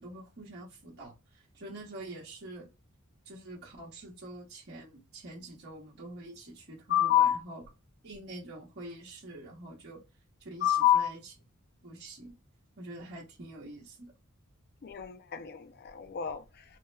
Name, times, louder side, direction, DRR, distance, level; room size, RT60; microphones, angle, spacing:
voice 1, 0.0-2.7 3.2-7.6 8.0-10.0 10.4-11.3 11.8-12.3 12.8-14.1, right 2 dB, 50° right, 1.0 m, -46 dB
voice 2, 6.9-7.4 10.6-11.1 14.8-16.6, left 11 dB, 45° left, 0.4 m, -27 dB
3.3 x 2.1 x 3.2 m
head